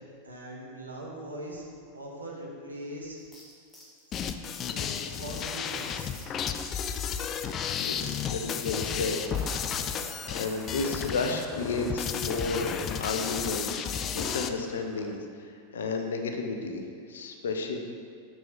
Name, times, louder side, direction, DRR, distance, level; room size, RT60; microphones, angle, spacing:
voice 1, 0.2-3.2 4.6-6.1 13.1-13.2, right 1 dB, 80° right, -3 dB, 1.5 m, -41 dB
sound 1, 3.2-9.6, left 1 dB, 10° left, 1.5 m, -51 dB
sound 2, 4.1-14.5, left 7 dB, 30° left, 0.4 m, -33 dB
voice 2, 7.4-9.7 10.3-12.7 13.0-17.8, left 3 dB, 65° left, 4 dB, 0.8 m, -33 dB
Cheering / Applause, 8.9-15.1, right 3 dB, 15° right, 0.6 m, -50 dB
6.9 x 6.1 x 4.8 m, 2.2 s
figure-of-eight pair, 90°, 0 cm